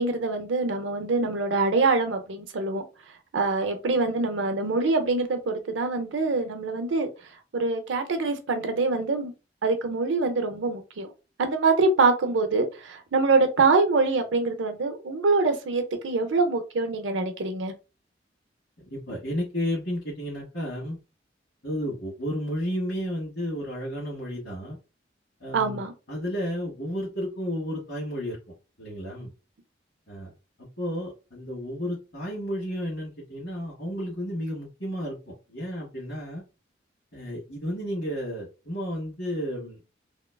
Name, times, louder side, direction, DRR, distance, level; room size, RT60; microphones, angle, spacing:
voice 1, 0.0-2.8 3.3-7.1 7.5-9.3 9.6-11.1 11.4-17.7 25.5-25.9, right 3 dB, 90° right, 0.6 m, -24 dB
voice 2, 18.9-21.0 21.6-24.8 25.4-25.8 26.1-28.4 28.8-29.3 30.1-30.3 30.8-36.4 37.1-39.8, equal, 70° left, 1.3 m, -32 dB
2.9 x 2.2 x 2.2 m
head